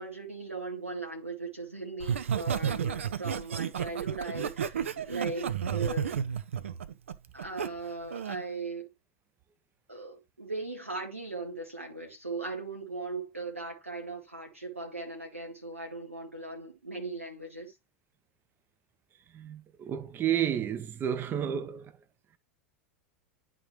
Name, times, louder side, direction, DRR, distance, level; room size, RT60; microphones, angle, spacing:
voice 1, 0.0-6.2 7.3-8.9 9.9-17.7, right 3 dB, 90° right, 1.8 m, -38 dB
Laughter, 2.0-7.7 8.1-8.4, right 8 dB, 70° right, 0.5 m, -32 dB
voice 2, 19.3-21.9, right 9 dB, 30° right, 0.8 m, -31 dB
11.0 x 3.8 x 3.1 m
figure-of-eight pair, 85°, 7 cm